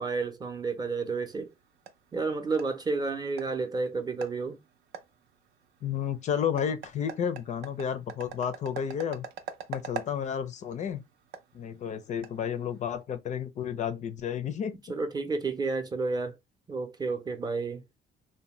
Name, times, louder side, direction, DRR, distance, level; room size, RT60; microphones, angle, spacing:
voice 1, 0.0-1.5 2.1-4.6 14.9-16.4 16.7-17.8, right 4 dB, 25° right, 0.6 m, -31 dB
sound 1, 1.2-13.0, right 7 dB, 75° right, 0.5 m, -45 dB
voice 2, 5.8-9.2 9.7-11.0 11.5-14.7, left 8 dB, 45° left, 0.4 m, -31 dB
2.6 x 2.1 x 3.0 m
cardioid pair, 110°, 17 cm